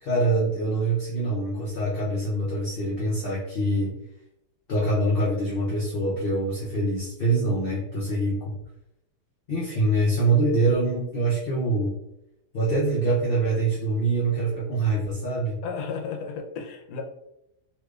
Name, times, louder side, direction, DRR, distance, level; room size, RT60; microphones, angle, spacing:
voice 1, 0.0-3.9 4.7-8.6 9.5-11.9 12.5-15.6, right 2 dB, 60° left, -6 dB, 0.6 m, -24 dB
voice 2, 15.6-17.0, left 5 dB, 75° left, 2 dB, 1.1 m, -33 dB
3.2 x 2.9 x 2.3 m, 0.83 s
omnidirectional pair, 1.8 m